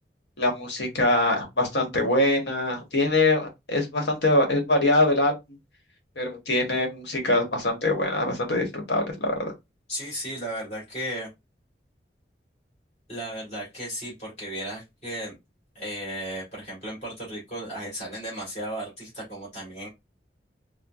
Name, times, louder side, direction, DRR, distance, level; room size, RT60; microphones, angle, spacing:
voice 1, 0.4-5.3 6.2-9.5, left 2 dB, 80° left, 1.2 m, -23 dB
voice 2, 9.9-11.3 13.1-15.4 15.7-19.9, equal, 40° left, 2.2 m, -35 dB
4.4 x 2.2 x 2.3 m
head